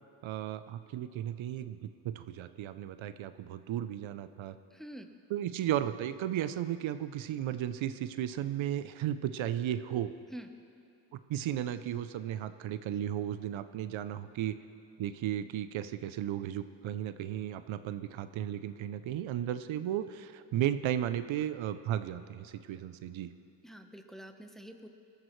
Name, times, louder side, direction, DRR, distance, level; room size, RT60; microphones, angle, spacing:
voice 1, 0.2-4.5 5.3-10.1 11.1-14.6 15.0-23.3, right 11 dB, 75° right, 12 dB, 0.6 m, -35 dB
voice 2, 4.7-5.1 10.3-10.5 23.6-24.9, equal, ahead, 5 dB, 0.9 m, -46 dB
19.5 x 13.5 x 3.2 m, 2.6 s
cardioid pair, 75°, 47 cm